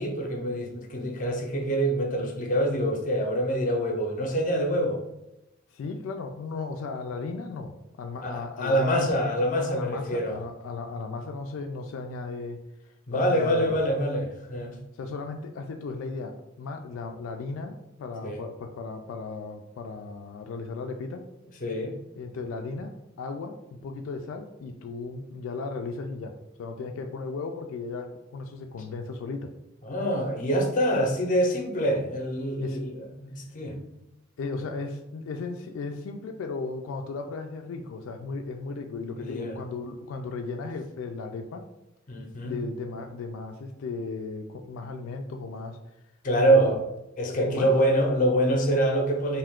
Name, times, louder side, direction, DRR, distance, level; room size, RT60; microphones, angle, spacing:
voice 1, 0.0-5.0 8.2-10.4 13.1-14.8 18.2-18.4 21.6-22.0 29.8-33.8 39.0-39.6 42.1-42.6 46.2-46.8 47.2-49.4, right 1 dB, 40° left, 2 dB, 0.6 m, -25 dB
voice 2, 5.7-9.1 9.7-12.6 13.1-13.8 15.0-21.2 22.2-29.5 32.6-32.8 34.4-41.6 42.4-45.8 46.4-46.8 47.3-47.7, left 4 dB, 85° left, 4 dB, 0.3 m, -36 dB
2.5 x 2.3 x 3.5 m, 0.91 s
head